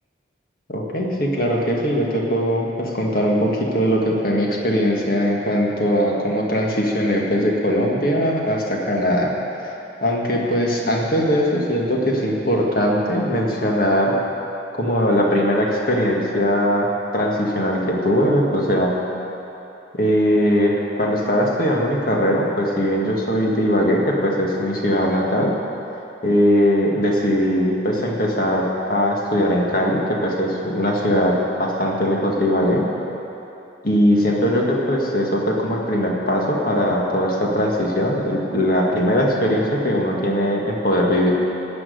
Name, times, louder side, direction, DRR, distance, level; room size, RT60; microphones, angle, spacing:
voice 1, 0.7-9.3 10.0-14.1 14.8-18.9 19.9-25.5 26.2-32.9 33.8-41.3, equal, 50° left, -2 dB, 1.9 m, -20 dB
15.0 x 6.2 x 9.5 m, 3.0 s
head